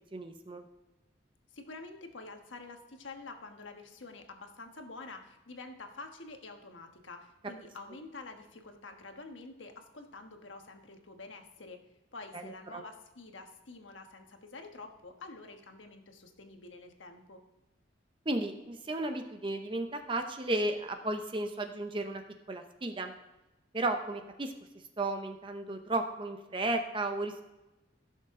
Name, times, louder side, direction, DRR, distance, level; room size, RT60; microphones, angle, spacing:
voice 1, 0.1-0.6 12.3-12.4 12.7-12.8 18.3-22.2 22.5-23.1 23.7-24.5 25.0-27.4, right 2 dB, 25° right, 6 dB, 0.6 m, -34 dB
voice 2, 1.5-11.8 12.1-17.4, left 3 dB, 85° left, 5 dB, 1.3 m, -48 dB
15.5 x 6.6 x 3.7 m, 1.0 s
head